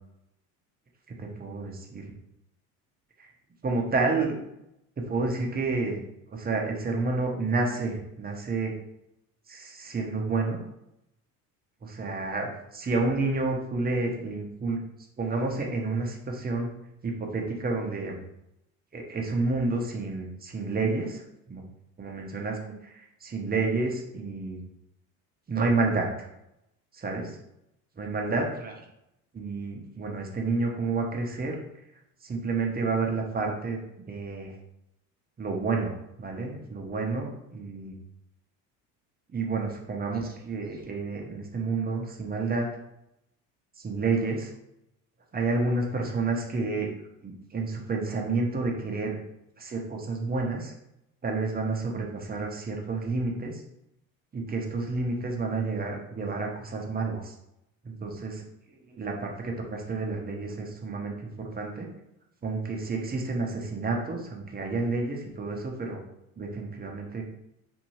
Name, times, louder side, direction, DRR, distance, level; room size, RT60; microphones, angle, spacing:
voice 1, 1.2-2.1 3.2-3.3 3.6-4.4 5.0-6.0 6.3-8.7 9.5-10.6 11.8-14.8 15.2-16.7 17.0-18.2 18.9-21.2 21.5-21.6 22.0-24.6 25.5-26.3 26.9-27.4 28.0-28.7 29.3-31.6 32.2-33.8 34.1-34.5 35.4-37.9 39.3-42.7 43.8-44.5 45.3-46.9 47.2-49.2 49.6-50.7 51.2-53.6 54.3-57.3 57.8-58.4 58.9-61.9 62.4-66.0 66.4-67.2, right 3 dB, 20° right, 1 dB, 0.8 m, -30 dB
2.7 x 2.6 x 3.0 m, 0.82 s
hypercardioid pair, 75°, 44 cm